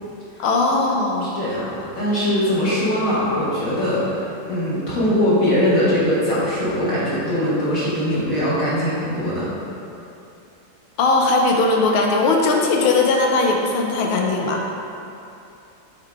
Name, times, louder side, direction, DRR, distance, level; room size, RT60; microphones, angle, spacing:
voice 1, 0.4-1.3 11.0-14.6, left 3 dB, 90° left, 1 dB, 1.5 m, -19 dB
voice 2, 1.2-9.5, equal, 45° left, -10 dB, 1.7 m, -21 dB
7.5 x 3.8 x 3.5 m, 2.7 s
omnidirectional pair, 2.3 m